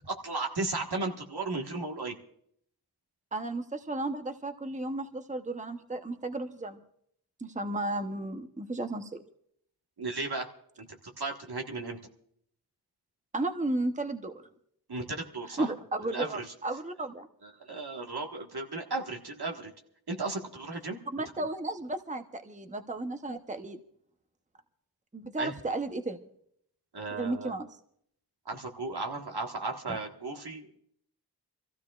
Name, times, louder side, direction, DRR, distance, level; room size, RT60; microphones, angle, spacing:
voice 1, 0.1-2.1 10.0-10.5 10.8-12.0 14.9-15.7 16.1-16.5 17.4-19.7 20.1-21.0 21.4-21.5 25.4-25.5 26.9-27.5 28.4-30.7, right 3 dB, 75° right, 2 dB, 1.6 m, -35 dB
voice 2, 3.3-6.8 7.4-9.2 13.3-14.5 15.6-17.3 21.1-23.8 25.1-26.2 27.1-27.7 29.9-30.0, right 2 dB, 20° right, 7 dB, 0.9 m, -34 dB
26.0 x 15.0 x 2.4 m, 0.68 s
wide cardioid pair, 40°, 39 cm